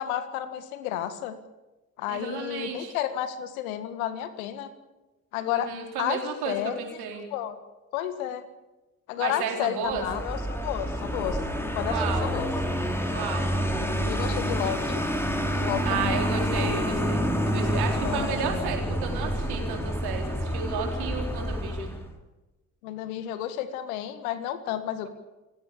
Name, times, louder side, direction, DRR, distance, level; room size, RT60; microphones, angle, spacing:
voice 1, 0.0-1.4 2.0-4.7 5.3-5.7 6.0-6.8 7.3-7.6 7.9-8.4 9.1-11.4 11.7-12.5 14.1-15.0 15.6-16.3 18.0-18.7 22.8-25.1, left 11 dB, 70° left, 12 dB, 1.9 m, -31 dB
voice 2, 2.1-2.9 5.5-7.3 9.2-10.0 11.9-12.3 13.1-13.5 14.6-14.8 15.8-22.0, right 6 dB, 60° right, 3 dB, 4.5 m, -32 dB
Vehicle, 9.9-22.1, equal, 5° left, 4.3 m, -28 dB
27.5 x 17.0 x 7.2 m, 1.1 s
figure-of-eight pair, 45°, 43 cm